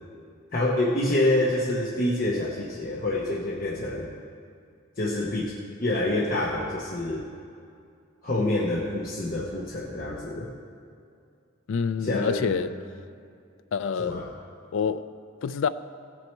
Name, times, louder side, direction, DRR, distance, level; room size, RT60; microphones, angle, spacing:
voice 1, 0.5-4.1 5.0-5.5 5.8-7.2 8.2-10.5 12.0-12.6 14.0-14.3, left 1 dB, 45° left, 0.9 m, -27 dB
voice 2, 11.7-12.7 13.7-14.3 14.7-15.1 15.4-15.7, left 6 dB, 65° left, 0.3 m, -27 dB
17.0 x 6.3 x 4.4 m
head